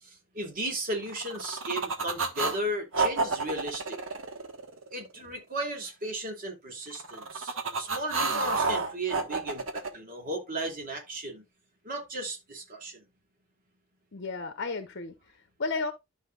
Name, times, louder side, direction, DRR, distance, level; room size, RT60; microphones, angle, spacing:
voice 1, 0.0-4.0 4.9-11.4 11.8-13.0, right 1 dB, 45° right, 2.6 m, -35 dB
sound 1, 1.1-2.6 2.9-5.1 6.9-9.9, right 3 dB, 85° right, 1.4 m, -30 dB
voice 2, 14.1-15.9, left 3 dB, 60° left, 0.8 m, -34 dB
12.0 x 5.5 x 2.4 m
head